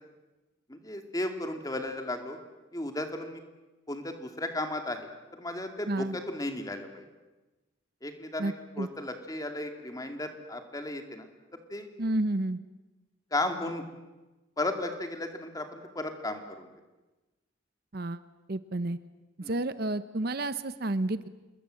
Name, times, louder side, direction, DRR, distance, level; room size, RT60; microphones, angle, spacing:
voice 1, 0.7-2.4 2.7-3.4 3.9-5.1 5.4-7.1 8.0-11.3 11.7-11.9 13.3-13.8 14.6-16.7 19.4-19.5, left 1 dB, 20° left, 5 dB, 2.4 m, -35 dB
voice 2, 8.4-8.9 12.0-12.6 17.9-18.2 18.5-19.0 19.5-21.3, right 2 dB, 50° right, 13 dB, 0.8 m, -30 dB
28.0 x 21.5 x 7.7 m, 1.1 s
head